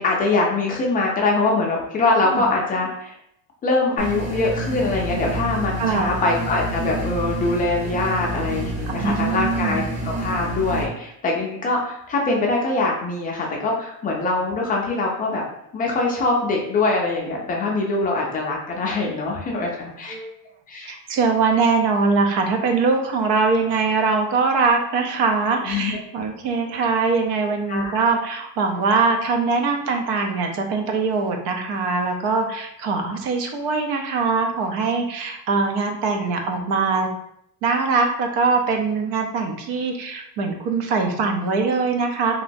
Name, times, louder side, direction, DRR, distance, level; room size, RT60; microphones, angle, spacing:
voice 1, 0.0-3.2 3.6-15.4 15.7-19.7 20.0-20.1 20.7-21.0 25.6-26.0 27.7-28.0, left 3 dB, 25° left, -1 dB, 0.3 m, -23 dB
sound 1, 4.0-10.8, right 2 dB, 20° right, 0.6 m, -29 dB
voice 2, 5.8-6.1 9.0-9.8 20.1-20.3 20.9-37.1 37.6-42.4, right 4 dB, 90° right, 4 dB, 0.7 m, -22 dB
3.0 x 2.7 x 2.6 m, 0.76 s
cardioid pair, 170°, 37 cm